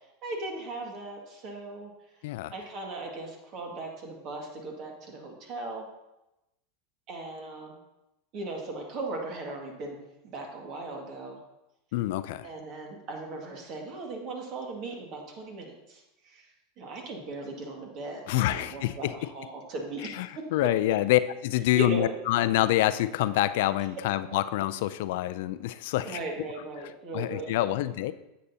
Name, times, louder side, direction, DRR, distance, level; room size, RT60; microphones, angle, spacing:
voice 1, 0.2-1.9 2.5-5.9 7.1-7.8 8.3-10.0 10.3-11.4 12.4-16.5 16.8-20.4 21.8-22.2 26.0-27.5, right 2 dB, 50° right, 1 dB, 1.9 m, -38 dB
voice 2, 11.9-12.5 18.3-19.1 20.0-26.2 27.1-28.1, left 15 dB, 70° left, 14 dB, 0.4 m, -26 dB
9.8 x 7.7 x 2.8 m, 0.94 s
hypercardioid pair, 105°, 0 cm